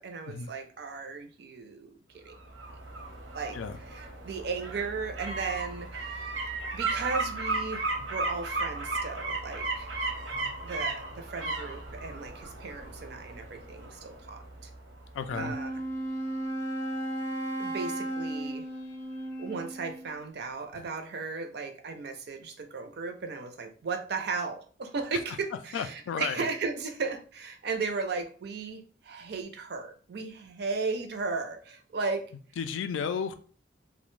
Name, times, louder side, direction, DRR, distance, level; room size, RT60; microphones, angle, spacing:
voice 1, 0.0-2.3 3.3-9.9 10.6-14.7 15.4-15.8 17.6-18.6 19.4-32.2, right 4 dB, 60° right, 0.4 m, -36 dB
sound 1, 2.3-15.1 15.5-15.6, right 3 dB, 90° right, 0.8 m, -35 dB
voice 2, 15.1-15.6 25.7-26.4 32.6-33.3, left 6 dB, 80° left, 0.3 m, -32 dB
Wind instrument woodwind instrument, 15.2-20.2, right 1 dB, 15° left, 0.5 m, -35 dB
2.4 x 2.1 x 3.1 m
head